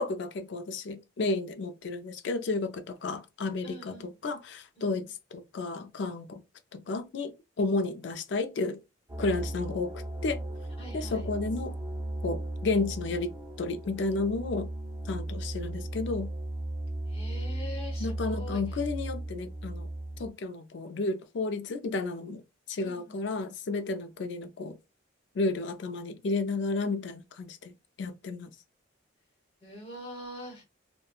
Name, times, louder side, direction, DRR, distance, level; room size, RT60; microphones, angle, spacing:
voice 1, 0.0-6.4 6.7-8.8 9.2-10.4 10.9-11.8 12.2-14.7 15.0-16.3 18.0-19.9 20.2-22.4 22.7-24.8 25.3-28.5, left 3 dB, 60° left, 0.4 m, -32 dB
voice 2, 3.6-4.1 4.8-5.1 10.8-11.3 17.1-18.8 22.8-23.2 29.6-30.6, left 1 dB, 30° left, 1.0 m, -44 dB
sound 1, 9.1-20.3, right 1 dB, 20° right, 0.3 m, -36 dB
2.9 x 2.1 x 2.3 m
head